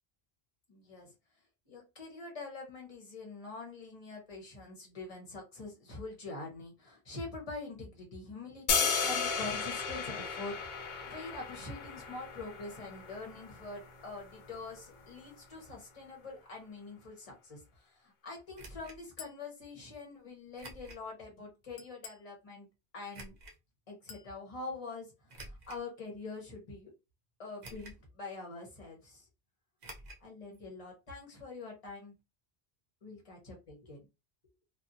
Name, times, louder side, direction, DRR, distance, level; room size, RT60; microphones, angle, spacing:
voice 1, 0.7-1.1 1.7-22.7 22.9-23.3 23.9-26.9 27.4-29.3 30.2-32.1 33.0-34.0, left 3 dB, 35° left, 0 dB, 1.1 m, -45 dB
sound 1, 8.7-14.8, left 5 dB, 60° left, 0.6 m, -35 dB
sound 2, 18.5-19.0 20.6-21.1 21.6-21.7 23.1-23.6 25.3-25.9 26.5-26.6 27.6-28.1 28.4-28.5 29.8-30.3 30.5-30.6 30.9-31.0, right 1 dB, 50° right, 0.7 m, -49 dB
Chink clink, 19.2-19.5 21.8-22.3 24.1-24.4, left 7 dB, 90° left, 0.9 m, -49 dB
2.5 x 2.5 x 2.7 m, 0.26 s
omnidirectional pair, 1.1 m